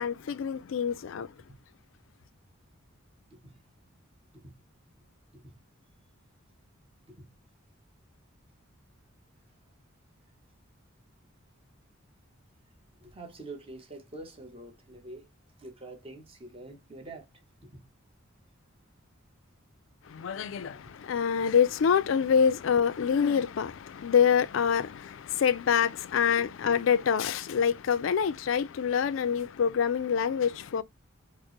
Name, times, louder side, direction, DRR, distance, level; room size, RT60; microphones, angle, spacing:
voice 1, 0.0-1.3 20.1-30.8, left 7 dB, 65° left, 0.3 m, -26 dB
voice 2, 13.0-15.3 15.6-17.3 17.6-17.8 26.4-26.5, right 2 dB, 25° right, 0.9 m, -46 dB
4.3 x 2.1 x 2.9 m
head